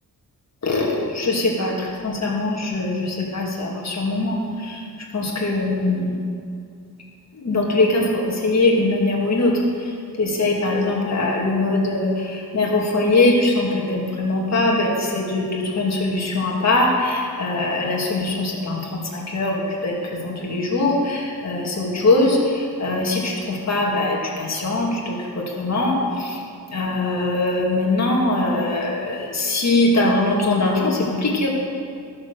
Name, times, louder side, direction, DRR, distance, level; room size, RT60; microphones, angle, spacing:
voice 1, 0.6-4.9 5.1-6.2 7.3-26.4 26.7-31.5, left 2 dB, 45° left, -2 dB, 2.3 m, -22 dB
13.0 x 7.1 x 6.9 m, 2.3 s
wide cardioid pair, 135°, 37 cm